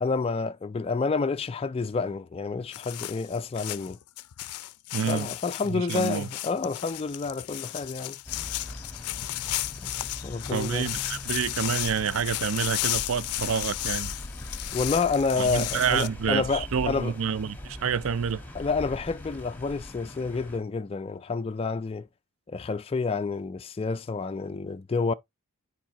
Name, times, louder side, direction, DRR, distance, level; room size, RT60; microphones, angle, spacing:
voice 1, 0.0-4.0 5.1-8.2 9.8-10.0 10.2-10.9 14.7-17.1 18.5-22.1 22.5-25.1, left 4 dB, 25° left, 0.3 m, -29 dB
sound 1, 2.7-16.1, left 16 dB, 90° left, 0.4 m, -34 dB
voice 2, 4.9-5.3 5.7-6.3 10.5-14.1 15.4-18.4, right 7 dB, 65° right, 0.4 m, -28 dB
sound 2, 8.3-20.6, left 1 dB, 10° left, 1.2 m, -41 dB
10.5 x 4.6 x 2.9 m
head